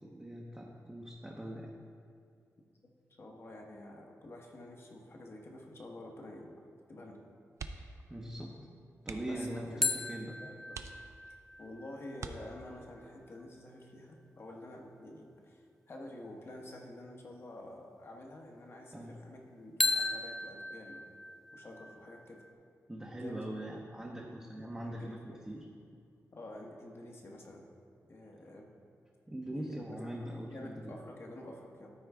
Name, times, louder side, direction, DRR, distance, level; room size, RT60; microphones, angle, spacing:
voice 1, 0.0-1.7 7.7-8.6 9.0-10.4 18.9-19.1 22.9-25.2 25.4-25.7 29.3-31.0, right 1 dB, 15° right, -3 dB, 0.7 m, -42 dB
voice 2, 3.2-6.5 6.9-7.2 9.2-9.9 10.4-10.8 11.6-21.1 21.5-22.4 23.2-23.4 24.8-25.4 26.3-27.7 28.1-28.7 29.5-30.2 30.5-31.9, left 1 dB, 45° left, 1 dB, 1.0 m, -49 dB
sound 1, 7.5-8.1 8.4-8.5 9.0-9.5 10.1-10.2 10.7-11.5 12.1-12.9 14.5-14.8 15.2-15.3, right 5 dB, 60° right, 0.4 m, -46 dB
sound 2, 9.8-13.4 19.8-22.5, left 2 dB, 5° left, 0.3 m, -37 dB
12.5 x 4.6 x 3.5 m, 2.3 s
wide cardioid pair, 110°, 6 cm